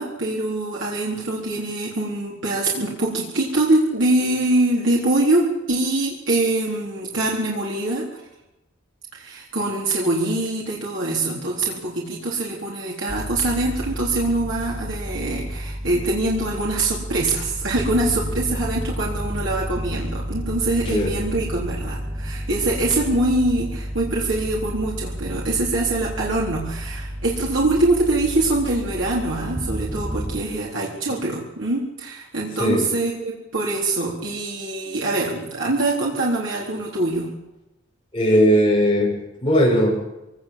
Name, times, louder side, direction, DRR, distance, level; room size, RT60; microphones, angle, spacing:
voice 1, 0.0-5.4 5.7-8.2 9.1-37.3, right 2 dB, 75° right, -3 dB, 4.1 m, -24 dB
sound 1, 13.1-30.4, equal, 10° right, 1.2 m, -31 dB
voice 2, 38.1-39.1 39.4-40.0, equal, 25° left, -2 dB, 7.8 m, -18 dB
23.0 x 18.5 x 7.8 m, 0.95 s
head